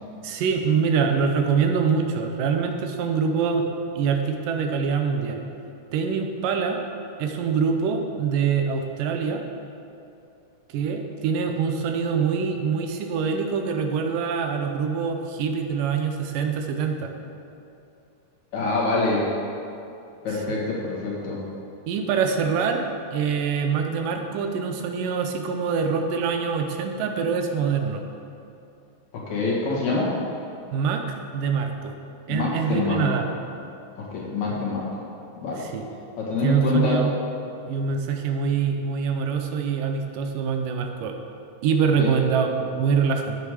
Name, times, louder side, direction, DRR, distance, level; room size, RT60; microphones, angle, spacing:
voice 1, 0.2-5.4 5.9-6.8 7.2-9.4 10.7-17.1 20.5-20.6 21.9-28.0 30.7-31.0 31.3-31.9 32.3-33.3 34.5-34.6 35.6-35.8 36.4-37.1 37.7-41.2 41.6-43.4, right 6 dB, 85° right, 5 dB, 2.4 m, -24 dB
voice 2, 18.5-19.3 20.2-21.4 29.1-30.2 32.3-33.1 34.0-34.9 35.4-35.6 36.2-37.0 42.0-42.1, left 3 dB, 60° left, -5 dB, 3.0 m, -25 dB
9.3 x 9.2 x 4.9 m, 2.7 s
omnidirectional pair, 3.8 m